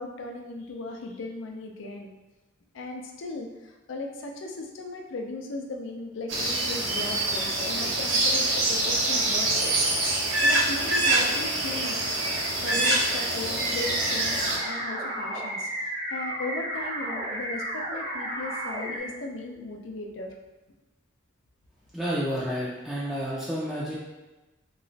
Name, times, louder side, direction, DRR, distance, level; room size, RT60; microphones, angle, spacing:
voice 1, 0.0-2.1 2.7-9.8 10.4-12.0 12.6-20.3, left 2 dB, 70° left, 2 dB, 0.5 m, -37 dB
sound 1, 6.3-14.6, right 2 dB, 85° right, 0.8 m, -25 dB
sound 2, 13.6-19.0, right 1 dB, 45° right, 0.7 m, -33 dB
voice 2, 21.9-24.0, equal, ahead, -8 dB, 0.4 m, -30 dB
3.0 x 2.9 x 2.7 m, 1.1 s
head